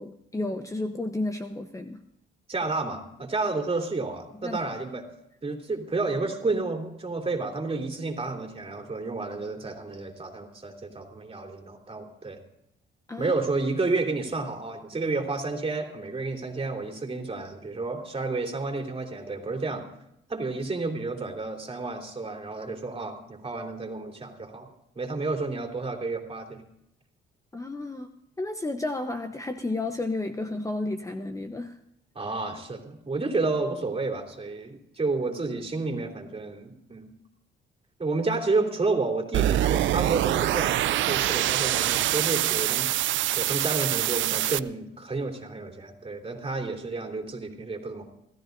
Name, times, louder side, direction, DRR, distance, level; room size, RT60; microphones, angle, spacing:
voice 1, 0.0-2.0 4.4-4.6 13.1-13.3 27.5-28.1 28.4-31.7, left 2 dB, 15° left, 6 dB, 0.9 m, -32 dB
voice 2, 2.5-5.1 5.4-12.4 13.2-19.9 20.3-24.7 24.9-26.6 32.1-37.1 38.0-48.1, right 3 dB, 30° right, 2 dB, 3.2 m, -31 dB
sound 1, 39.3-44.6, right 14 dB, 75° right, 0.5 m, -25 dB
27.5 x 13.5 x 2.6 m, 0.79 s
cardioid pair, 90°, 20 cm